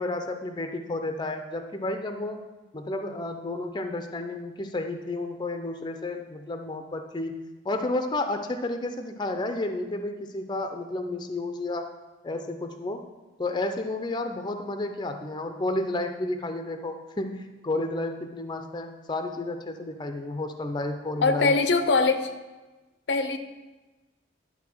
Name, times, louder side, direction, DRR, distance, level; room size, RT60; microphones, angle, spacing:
voice 1, 0.0-2.4 2.7-7.4 7.6-11.9 12.2-13.0 13.4-21.5, left 2 dB, 25° left, 6 dB, 0.5 m, -31 dB
voice 2, 21.2-22.3 23.1-23.4, left 3 dB, 70° left, 9 dB, 0.6 m, -22 dB
10.5 x 3.8 x 6.1 m, 1.2 s
head